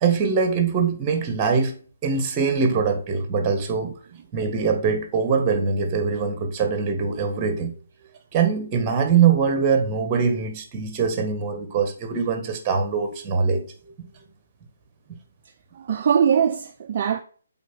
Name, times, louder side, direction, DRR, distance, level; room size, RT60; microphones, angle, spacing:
voice 1, 0.0-3.9 4.3-7.7 8.3-13.6, right 5 dB, 20° right, 1.7 m, -22 dB
voice 2, 15.8-17.2, right 7 dB, 40° right, 0.7 m, -21 dB
8.2 x 4.3 x 6.2 m
figure-of-eight pair, 140°, 0 cm